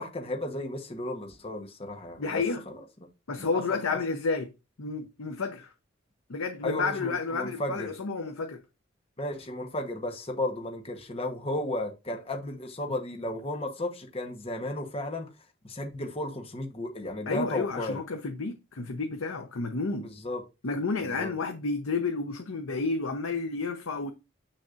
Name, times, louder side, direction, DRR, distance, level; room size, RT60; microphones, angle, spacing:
voice 1, 0.0-2.8 3.4-3.6 3.9-4.0 6.6-7.9 9.2-15.3 15.6-18.0 20.0-20.4 21.0-21.3, left 1 dB, 30° left, 1.1 m, -34 dB
voice 2, 2.2-2.6 3.3-4.5 4.8-5.7 6.3-8.6 17.3-20.1 20.6-24.1, left 4 dB, 90° left, 0.8 m, -31 dB
7.4 x 6.4 x 2.5 m
head